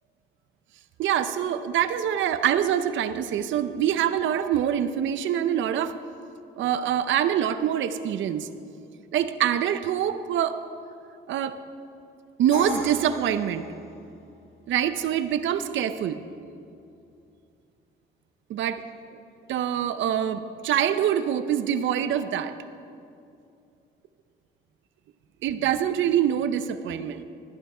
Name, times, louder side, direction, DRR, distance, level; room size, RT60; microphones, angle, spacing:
voice 1, 1.0-5.9 6.6-8.5 9.1-10.6 11.3-11.6 12.4-13.7 14.7-16.2 18.5-18.8 19.5-22.5 25.4-27.2, right 10 dB, 75° right, 11 dB, 0.6 m, -25 dB
Crash cymbal, 12.5-14.4, left 2 dB, 85° left, 2.7 m, -37 dB
12.0 x 11.0 x 4.9 m, 2.5 s
cardioid pair, 90°, 20 cm